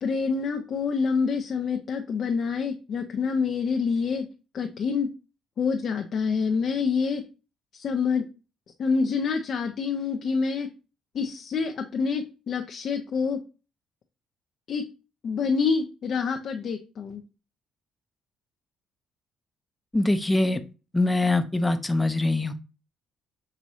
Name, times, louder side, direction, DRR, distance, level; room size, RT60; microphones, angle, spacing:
voice 1, 0.0-4.3 4.5-5.1 5.6-7.2 7.7-8.3 8.8-10.7 11.1-13.4 14.7-14.9 15.2-17.2, left 5 dB, 60° left, 4 dB, 0.6 m, -27 dB
voice 2, 19.9-20.6 20.9-22.5, left 2 dB, 10° left, 9 dB, 0.7 m, -23 dB
6.1 x 3.0 x 2.7 m, 0.32 s
supercardioid pair, 70°, 0 cm